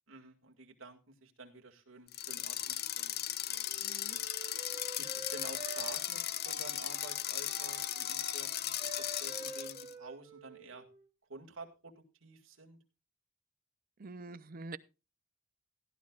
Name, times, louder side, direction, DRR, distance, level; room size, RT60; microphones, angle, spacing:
voice 1, 0.1-4.2 5.0-10.9 11.3-12.8, right 3 dB, 80° right, 2.0 m, -51 dB
sound 1, 2.1-9.9, left 12 dB, 50° left, 0.6 m, -37 dB
Wind instrument woodwind instrument, 3.6-11.1, right 3 dB, 25° right, 4.1 m, -48 dB
voice 2, 3.8-4.2 14.0-14.8, right 3 dB, 45° right, 0.6 m, -45 dB
17.0 x 11.5 x 2.4 m
head